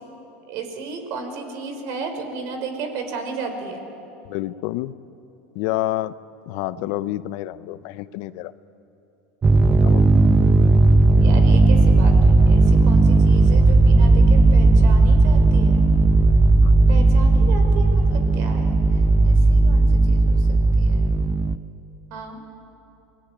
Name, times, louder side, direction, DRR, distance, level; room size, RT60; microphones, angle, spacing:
voice 1, 0.5-3.8 11.2-15.8 16.9-18.8 19.2-20.5 20.8-21.1 22.1-22.4, right 4 dB, 60° right, 6 dB, 5.0 m, -33 dB
voice 2, 4.2-4.9 5.5-6.1 6.5-8.5 9.7-10.1 16.6-16.7, left 16 dB, 65° left, 15 dB, 0.7 m, -28 dB
sound 1, 9.4-21.6, right 2 dB, 25° right, 0.8 m, -15 dB
26.0 x 19.5 x 9.8 m, 2.9 s
supercardioid pair, 105°, 7 cm